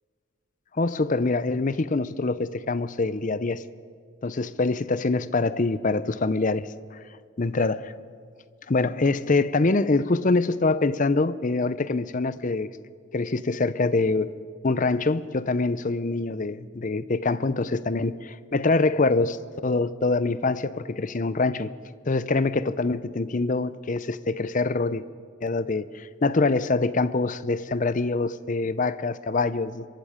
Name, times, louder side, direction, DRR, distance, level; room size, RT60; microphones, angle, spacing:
voice 1, 0.7-3.6 4.2-7.0 7.4-7.9 8.7-12.7 13.1-14.3 14.6-19.4 19.6-21.7 22.1-25.0 25.4-29.9, left 3 dB, 35° left, 0.6 m, -25 dB
26.0 x 22.5 x 5.1 m
head